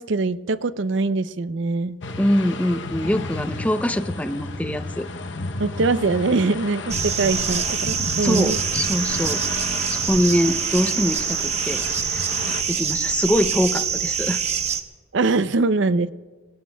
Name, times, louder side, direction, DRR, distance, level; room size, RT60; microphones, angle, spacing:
voice 1, 0.0-2.0 5.6-8.6 15.1-16.1, right 3 dB, 75° right, 14 dB, 0.5 m, -22 dB
sound 1, 2.0-12.6, left 3 dB, 70° left, 0.8 m, -32 dB
voice 2, 2.2-5.1 8.2-9.4 9.9-14.4, equal, 5° left, 9 dB, 0.5 m, -24 dB
sound 2, 6.9-14.8, right 7 dB, 35° right, 0.9 m, -25 dB
26.5 x 21.0 x 2.3 m, 1.3 s
head